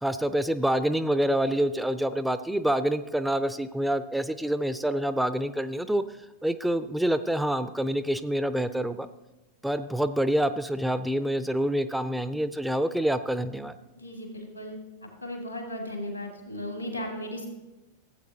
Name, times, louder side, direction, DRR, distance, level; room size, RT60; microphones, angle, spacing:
voice 1, 0.0-6.0 6.4-9.1 9.6-13.8, right 1 dB, 5° right, 12 dB, 0.4 m, -27 dB
voice 2, 14.0-14.8 15.2-17.5, left 1 dB, 90° left, 1 dB, 2.2 m, -36 dB
15.5 x 8.3 x 2.8 m, 1.1 s
figure-of-eight pair, 90°, 0 cm